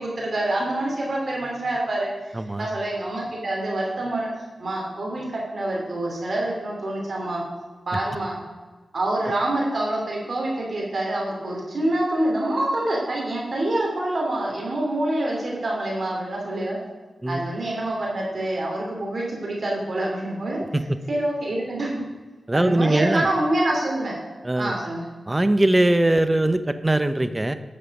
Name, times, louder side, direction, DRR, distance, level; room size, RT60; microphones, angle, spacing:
voice 1, 0.0-2.1 2.6-4.3 4.6-7.4 7.9-8.4 8.9-16.8 17.3-20.6 21.1-22.0 22.5-24.2 24.6-25.0, right 1 dB, 60° right, -3 dB, 2.8 m, -26 dB
voice 2, 2.3-2.7 17.2-17.4 20.7-20.8 22.5-23.3 24.4-24.7 25.3-27.5, right 1 dB, 20° right, 11 dB, 0.8 m, -21 dB
10.5 x 6.7 x 5.3 m, 1.3 s
cardioid pair, 45°, 0 cm